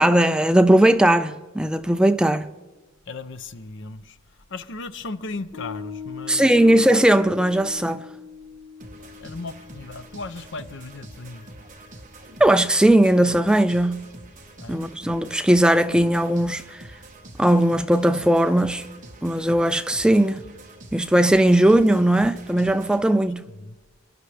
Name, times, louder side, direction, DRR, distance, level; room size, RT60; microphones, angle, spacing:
voice 1, 0.0-2.5 6.3-8.1 12.4-14.1 14.7-16.9 17.4-18.9 19.2-20.4 20.9-23.5, right 1 dB, 5° right, 0.3 m, -18 dB
voice 2, 3.1-4.2 4.5-6.8 9.0-11.5 14.6-14.8 23.6-23.8, left 3 dB, 60° left, 0.7 m, -36 dB
Piano, 5.5-12.3, left 6 dB, 20° left, 2.4 m, -41 dB
sound 1, 8.8-23.0, right 2 dB, 40° right, 1.3 m, -45 dB
29.5 x 11.0 x 3.4 m
head